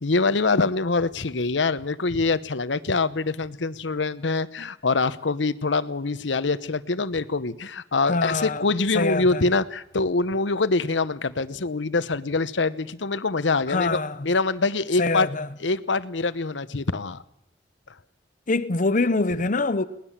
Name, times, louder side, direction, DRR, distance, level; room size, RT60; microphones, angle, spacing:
voice 1, 0.0-15.3 15.6-17.2, left 3 dB, 85° left, 0.9 m, -24 dB
voice 2, 8.1-8.6 8.9-9.4 13.7-14.2 15.0-15.5 18.5-19.8, left 3 dB, 45° left, 0.9 m, -24 dB
21.5 x 18.5 x 7.4 m
head